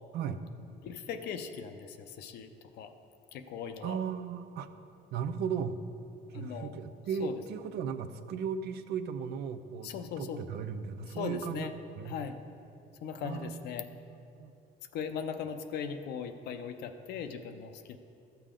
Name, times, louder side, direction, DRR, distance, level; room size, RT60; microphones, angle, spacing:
voice 1, 0.8-2.5 2.8-2.9 3.3-4.0 6.3-6.7 7.2-7.4 9.8-10.4 11.1-11.7 12.0-12.4 13.0-13.9 14.9-18.0, left 7 dB, 75° left, 7 dB, 0.6 m, -39 dB
voice 2, 3.8-4.7 5.1-5.8 6.3-11.7 12.0-12.1 13.2-13.6 14.1-14.5, right 7 dB, 75° right, 10 dB, 0.6 m, -36 dB
13.0 x 6.9 x 3.7 m, 2.6 s
cardioid pair, 110°, 17 cm